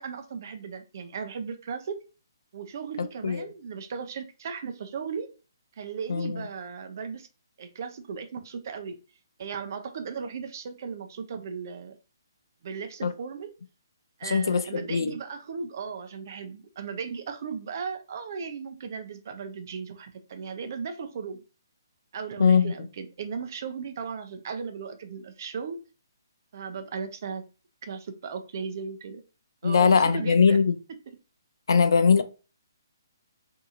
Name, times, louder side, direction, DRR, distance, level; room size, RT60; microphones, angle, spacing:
voice 1, 0.0-2.0 2.5-5.3 5.8-7.3 7.6-9.0 9.4-12.0 12.6-13.5 14.2-21.4 22.1-25.8 26.5-27.5 27.8-29.2 29.6-30.6 31.1-31.2, right 6 dB, 50° right, 0.6 m, -36 dB
voice 2, 3.0-3.5 6.1-6.4 13.0-13.1 14.2-15.2 22.4-22.7 29.6-30.8 31.7-32.2, left 5 dB, 75° left, 0.5 m, -21 dB
2.8 x 2.7 x 3.7 m
hypercardioid pair, 160°, 2 cm